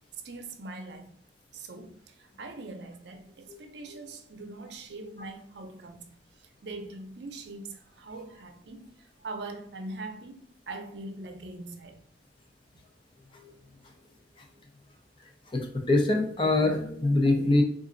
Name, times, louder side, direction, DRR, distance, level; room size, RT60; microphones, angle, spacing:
voice 1, 0.2-1.1 1.5-6.1 6.4-12.0, right 2 dB, 65° right, 0.6 m, -42 dB
voice 2, 15.5-17.6, left 2 dB, 30° left, 0.6 m, -24 dB
4.0 x 2.5 x 3.8 m
head